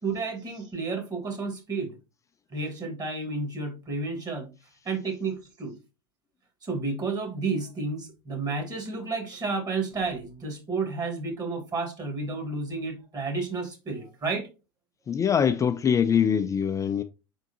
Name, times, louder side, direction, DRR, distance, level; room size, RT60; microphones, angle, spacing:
voice 1, 0.0-2.0 2.5-4.5 4.8-5.8 6.6-14.5, right 3 dB, 30° right, 1.5 m, -31 dB
voice 2, 15.1-17.0, left 7 dB, 25° left, 0.3 m, -23 dB
4.4 x 3.5 x 2.7 m
hypercardioid pair, 80°, 12 cm